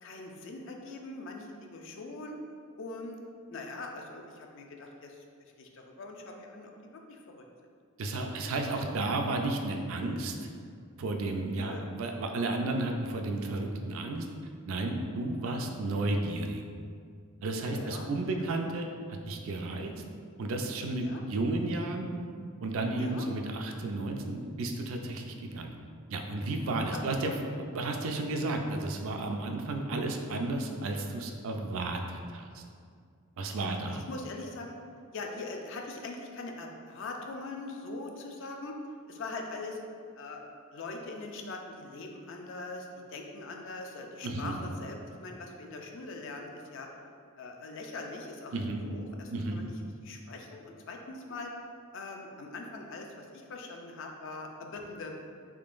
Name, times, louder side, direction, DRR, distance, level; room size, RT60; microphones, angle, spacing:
voice 1, 0.0-2.4 2.8-3.2 3.5-5.2 5.6-6.7 7.1-7.4 8.1-8.7 9.0-9.2 11.5-11.8 17.6-18.1 21.0-21.2 23.0-23.3 26.9-27.3 33.9-34.8 35.1-38.8 39.1-39.8 40.2-40.4 40.7-46.9 47.4-49.7 50.0-51.5 51.9-55.2, left 3 dB, 55° left, 2 dB, 0.4 m, -42 dB
voice 2, 8.0-10.3 11.0-14.2 14.7-16.6 17.4-18.9 19.3-19.9 20.4-22.1 22.6-25.7 26.1-32.6 33.4-34.0 44.2-44.6 48.5-48.8 49.3-49.6, right 2 dB, 65° right, 3 dB, 0.4 m, -32 dB
3.6 x 3.6 x 2.5 m, 2.2 s
head